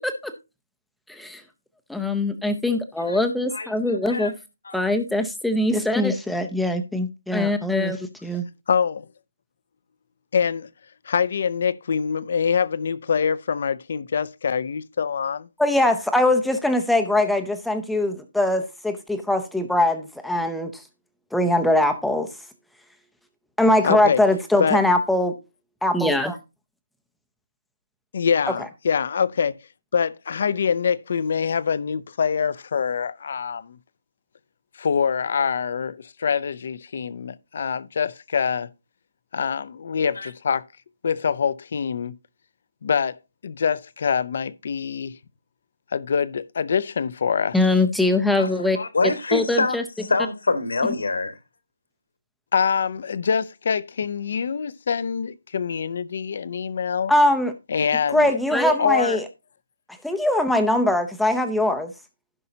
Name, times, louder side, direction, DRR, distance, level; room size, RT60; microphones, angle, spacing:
voice 1, 1.1-1.4 1.9-4.3 4.7-8.5 15.6-20.8 21.3-22.3 23.6-25.4 25.8-26.4 47.5-48.8 49.3-49.8 57.1-57.5 58.1-59.2 60.0-61.9, left 1 dB, ahead, 0.7 m, -22 dB
voice 2, 3.5-4.3 4.6-4.9 40.2-40.3 48.3-48.5 48.7-49.8 50.1-51.4, left 3 dB, 75° left, 2.1 m, -25 dB
voice 3, 8.7-9.1 10.3-10.7 11.1-15.5 23.8-24.2 24.6-24.8 28.1-29.6 29.9-33.8 34.8-38.7 39.3-40.6 41.0-42.1 42.8-45.2 45.9-47.6 52.5-57.1 57.7-58.4 58.8-59.2, left 6 dB, 45° left, 0.6 m, -24 dB
15.5 x 5.4 x 2.8 m
hypercardioid pair, 170°, 0 cm